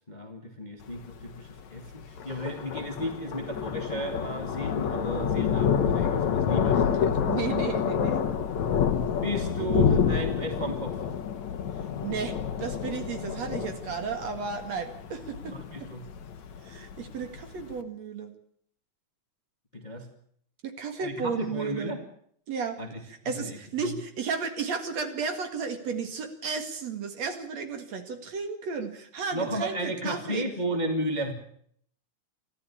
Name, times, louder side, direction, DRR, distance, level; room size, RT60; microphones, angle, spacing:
voice 1, 0.1-6.8 9.2-11.1 15.5-16.0 19.7-20.1 21.0-22.0 22.8-24.0 29.3-31.3, right 1 dB, 15° left, 5 dB, 1.8 m, -34 dB
Thunder, 0.8-17.7, left 7 dB, 60° left, 2.7 m, -28 dB
voice 2, 6.7-8.2 12.0-15.9 16.6-18.3 20.6-21.9 22.5-22.8 23.1-30.5, right 5 dB, 55° right, 8 dB, 3.0 m, -33 dB
24.0 x 14.5 x 8.6 m, 0.64 s
omnidirectional pair, 3.8 m